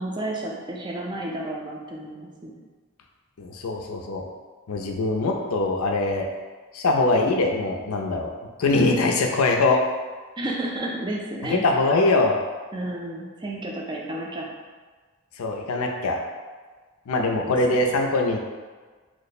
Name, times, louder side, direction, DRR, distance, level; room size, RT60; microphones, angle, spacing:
voice 1, 0.0-2.6 10.4-11.6 12.7-14.5 17.5-17.9, right 1 dB, 20° right, -2 dB, 0.4 m, -32 dB
voice 2, 3.4-4.3 4.7-6.3 6.7-8.3 8.6-9.8 11.4-12.3 15.4-16.2 17.1-18.4, left 2 dB, 90° left, 1 dB, 0.5 m, -22 dB
3.0 x 2.0 x 4.1 m, 1.4 s
head